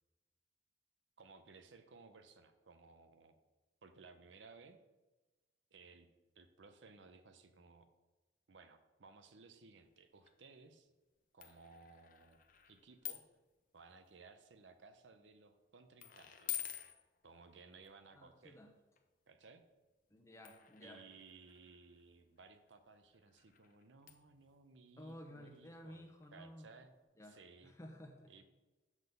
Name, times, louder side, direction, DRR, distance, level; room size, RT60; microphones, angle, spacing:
voice 1, 1.2-3.4 3.8-4.8 5.7-6.1 6.4-7.9 8.5-10.9 11.3-12.4 12.7-13.2 13.7-16.7 17.2-18.6 19.3-19.6 20.8-26.0 26.3-26.9 27.2-27.7 28.3-28.4, right 4 dB, 90° right, 9 dB, 0.7 m, -60 dB
sound 1, 9.9-10.0 10.2-10.3 11.4-13.4 13.8-14.2 14.8-15.1 16.0-17.9 19.0-19.1 20.4-26.0 26.2-26.3 26.6-26.7, left 12 dB, 50° left, 0.6 m, -49 dB
voice 2, 18.2-18.7 20.1-21.0 25.0-26.7 27.2-28.3, equal, 15° left, 4 dB, 0.8 m, -54 dB
7.2 x 4.0 x 6.6 m, 1.2 s
head